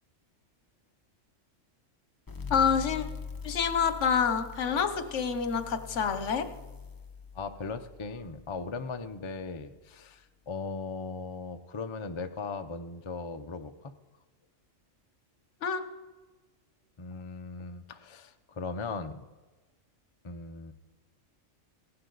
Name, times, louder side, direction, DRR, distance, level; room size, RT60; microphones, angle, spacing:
sound 1, 2.3-9.5, left 5 dB, 20° left, 0.8 m, -43 dB
voice 1, 2.5-3.1 3.4-6.5 15.6-15.8, left 6 dB, 70° left, 10 dB, 1.2 m, -27 dB
voice 2, 7.3-13.9 17.0-19.3 20.2-20.7, left 4 dB, 35° left, 7 dB, 0.5 m, -38 dB
16.5 x 11.0 x 4.0 m, 1.2 s
omnidirectional pair, 1.3 m